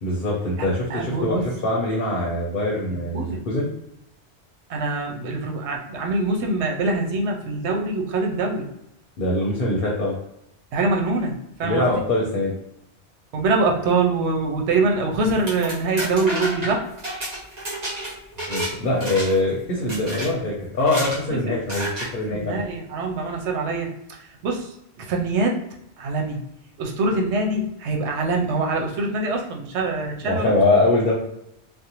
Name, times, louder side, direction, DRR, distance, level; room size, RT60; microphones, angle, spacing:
voice 1, 0.0-3.7 9.2-10.1 11.6-12.5 18.4-22.6 30.2-31.1, left 2 dB, 55° left, -3 dB, 0.7 m, -23 dB
voice 2, 0.9-1.4 3.1-3.4 4.7-8.7 10.7-11.9 13.3-16.8 21.3-21.5 22.3-25.6 26.0-26.4 26.8-30.6, right 3 dB, 90° right, 1 dB, 0.9 m, -24 dB
sound 1, 15.3-18.7 19.0-19.5 19.9-20.3 20.8-21.2 21.7-22.1, right 1 dB, 40° right, 0.9 m, -30 dB
2.5 x 2.1 x 2.9 m, 0.79 s
omnidirectional pair, 1.1 m